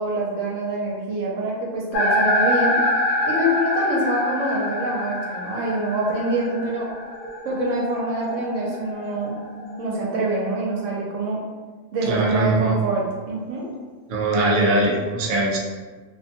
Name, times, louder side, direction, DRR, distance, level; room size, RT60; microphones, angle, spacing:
voice 1, 0.0-2.8 3.2-6.9 7.4-9.3 9.8-11.4 11.9-13.7, right 2 dB, 75° right, -3 dB, 1.0 m, -25 dB
sound 1, 1.9-9.9, left 1 dB, 65° left, 0.8 m, -26 dB
voice 2, 12.1-12.8 14.1-15.6, right 1 dB, 60° right, -3 dB, 0.5 m, -21 dB
2.8 x 2.2 x 2.8 m, 1.4 s
omnidirectional pair, 1.4 m